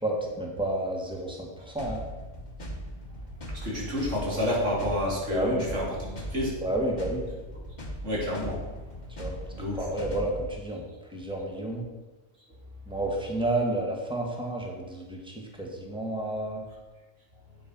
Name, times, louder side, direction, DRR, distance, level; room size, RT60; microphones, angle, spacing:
voice 1, 0.0-2.0 5.3-5.6 6.6-7.2 9.2-10.8 11.1-11.8 12.9-16.6, right 1 dB, 5° right, -1 dB, 2.0 m, -31 dB
sound 1, 1.8-10.5, equal, 40° left, 1.6 m, -39 dB
voice 2, 3.5-6.6 7.5-7.6 8.0-8.7 9.1-9.2 9.5-9.8, left 1 dB, 90° right, -4 dB, 3.5 m, -30 dB
8.8 x 7.9 x 6.3 m, 1.2 s
omnidirectional pair, 1.2 m